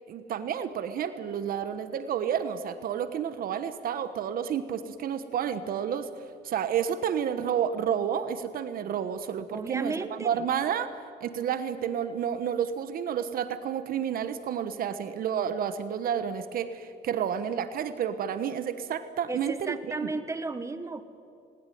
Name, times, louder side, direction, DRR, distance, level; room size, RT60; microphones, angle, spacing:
voice 1, 0.1-6.1 6.4-10.9 11.2-19.8 20.0-20.1, right 8 dB, 60° right, 11 dB, 1.2 m, -30 dB
voice 2, 9.5-10.4 19.3-21.0, right 3 dB, 15° right, 10 dB, 1.5 m, -34 dB
20.5 x 19.5 x 9.4 m, 2.5 s
cardioid pair, 110°, 17 cm